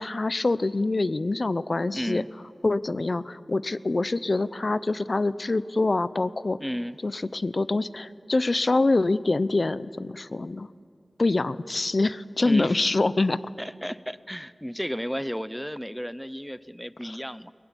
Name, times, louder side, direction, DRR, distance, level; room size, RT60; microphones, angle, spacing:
voice 1, 0.0-2.2 2.6-6.6 7.0-10.7 11.2-13.4 17.0-17.2, left 2 dB, 45° left, 16 dB, 0.7 m, -25 dB
voice 2, 1.9-2.3 6.6-7.0 12.4-12.8 13.6-17.5, equal, 5° left, 16 dB, 0.6 m, -33 dB
22.5 x 20.5 x 9.9 m, 2.3 s
wide cardioid pair, 80°, 0 cm